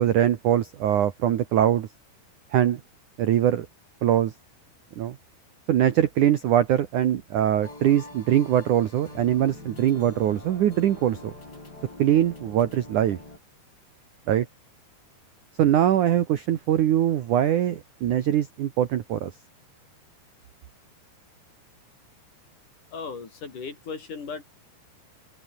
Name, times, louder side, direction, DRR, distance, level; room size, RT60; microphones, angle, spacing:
voice 1, 0.0-1.9 2.5-2.8 3.2-3.7 4.0-4.3 5.0-5.2 5.7-11.3 12.0-13.2 14.3-14.5 15.6-19.3, right 11 dB, 70° right, 2.0 m, -22 dB
sound 1, 7.6-13.4, left 2 dB, 20° left, 7.0 m, -44 dB
voice 2, 22.9-24.4, left 5 dB, 45° left, 5.2 m, -36 dB
open air
omnidirectional pair, 5.4 m